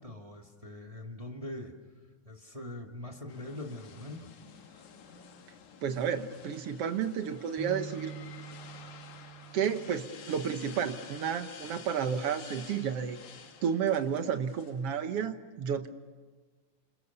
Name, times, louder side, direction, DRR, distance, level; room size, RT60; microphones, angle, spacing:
voice 1, 0.0-1.7 2.2-4.3, left 1 dB, 15° right, 2 dB, 1.2 m, -42 dB
sound 1, 3.3-15.3, left 6 dB, 60° left, 2.9 m, -51 dB
voice 2, 5.8-8.1 9.5-13.2 13.6-15.9, right 7 dB, 70° right, 8 dB, 1.4 m, -31 dB
sound 2, 7.6-11.8 12.3-12.5 13.4-13.8, right 6 dB, ahead, 4.6 m, -48 dB
29.0 x 27.0 x 7.0 m, 1.4 s
omnidirectional pair, 4.2 m